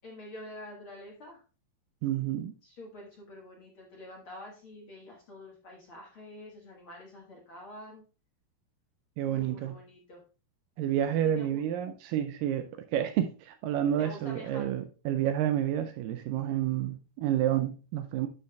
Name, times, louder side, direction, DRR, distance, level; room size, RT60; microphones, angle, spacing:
voice 1, 0.0-1.4 2.6-8.0 9.2-10.2 11.2-11.6 13.0-13.1 14.0-14.7, left 1 dB, 50° left, 1.8 m, -47 dB
voice 2, 2.0-2.5 9.2-9.8 10.8-18.3, right 11 dB, 80° right, 2.1 m, -29 dB
11.5 x 7.0 x 2.3 m
omnidirectional pair, 4.3 m